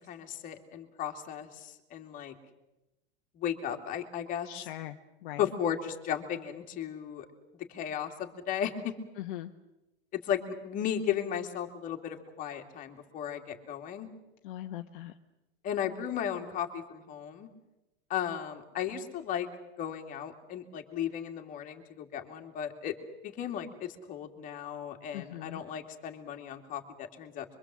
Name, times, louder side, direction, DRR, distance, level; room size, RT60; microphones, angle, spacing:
voice 1, 0.0-2.3 3.4-4.5 5.4-7.3 7.7-8.9 10.1-14.1 15.6-17.5 18.1-19.5 19.8-22.9 23.2-27.5, left 9 dB, 25° left, 4 dB, 2.5 m, -35 dB
voice 2, 4.5-5.0 5.2-5.5 9.2-9.5 14.4-15.1 25.1-25.6, left 14 dB, 50° left, 5 dB, 1.2 m, -40 dB
26.0 x 23.5 x 7.6 m, 0.96 s
supercardioid pair, 165°, 32 cm